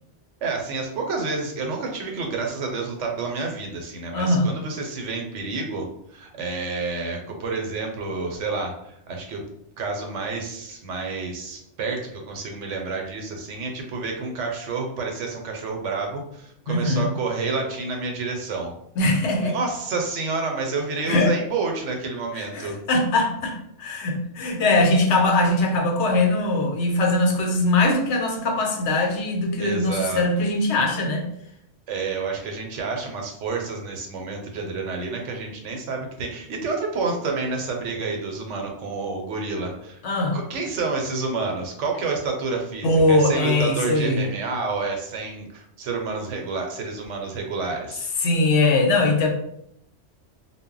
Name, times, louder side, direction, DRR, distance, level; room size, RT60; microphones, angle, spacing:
voice 1, 0.4-5.9 6.1-9.4 9.8-18.7 19.4-22.8 29.6-30.2 31.9-40.0 40.3-48.1, right 4 dB, 85° right, 2 dB, 1.0 m, -29 dB
voice 2, 4.1-4.5 16.7-17.1 19.0-19.5 21.1-21.3 22.3-31.3 40.0-40.4 42.8-44.2 48.2-49.3, left 2 dB, 75° left, 2 dB, 0.9 m, -21 dB
2.1 x 2.0 x 3.7 m, 0.74 s
omnidirectional pair, 1.2 m